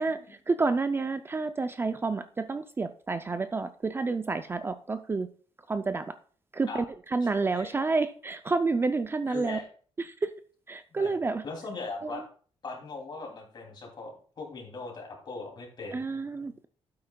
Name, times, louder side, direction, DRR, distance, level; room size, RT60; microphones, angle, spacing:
voice 1, 0.0-5.3 5.7-6.1 6.5-9.6 10.0-10.3 10.7-11.4 12.0-12.2 15.9-16.7, right 3 dB, 20° right, 10 dB, 0.4 m, -29 dB
voice 2, 9.3-9.7 10.9-11.2 11.4-12.2 12.6-16.1 16.4-16.5, left 3 dB, 45° left, 1 dB, 2.8 m, -39 dB
11.5 x 8.6 x 2.3 m, 0.43 s
cardioid pair, 140°, 11 cm